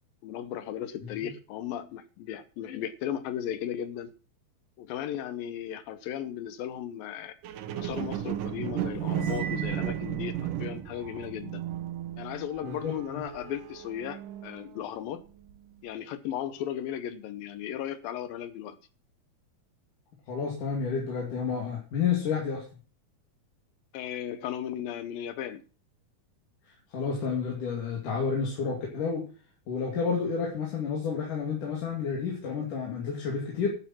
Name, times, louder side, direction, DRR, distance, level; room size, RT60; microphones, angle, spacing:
voice 1, 0.2-4.1 4.8-7.4 7.8-11.6 12.2-15.2 15.8-18.8 23.9-25.6, left 10 dB, 80° left, 2.6 m, -36 dB
sound 1, 7.4-14.9 15.4-15.5, right 10 dB, 70° right, 2.3 m, -34 dB
Cymbal, 9.1-10.6, right 8 dB, 85° right, 3.4 m, -41 dB
voice 2, 12.6-13.2 20.3-22.6 26.9-29.2 29.7-33.7, left 6 dB, 60° left, 4.0 m, -30 dB
12.0 x 8.3 x 6.0 m
omnidirectional pair, 4.3 m